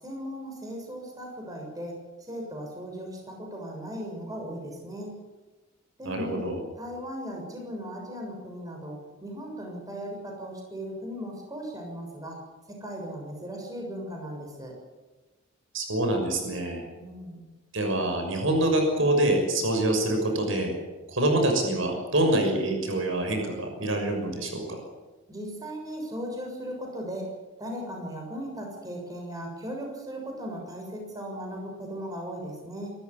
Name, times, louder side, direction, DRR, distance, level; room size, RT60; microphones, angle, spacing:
voice 1, 0.0-2.0 2.3-5.1 6.0-6.4 6.8-12.4 12.7-14.7 16.9-17.5 25.3-27.3 27.6-32.9, equal, 20° right, 1 dB, 6.8 m, -37 dB
voice 2, 6.0-6.6 15.7-16.9 17.7-20.7 21.1-24.8, right 1 dB, 80° right, 3 dB, 6.3 m, -25 dB
26.5 x 13.5 x 9.9 m, 1.2 s
head